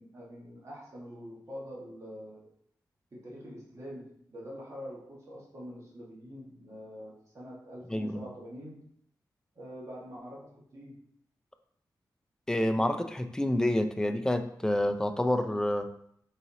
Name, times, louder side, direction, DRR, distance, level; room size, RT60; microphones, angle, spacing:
voice 1, 0.0-2.5 3.1-8.8 9.5-11.1, equal, 40° right, -4 dB, 1.5 m, -45 dB
voice 2, 7.9-8.2 12.5-15.9, left 1 dB, 10° left, 8 dB, 0.3 m, -28 dB
4.0 x 4.0 x 2.7 m, 0.69 s
wide cardioid pair, 105°, 7 cm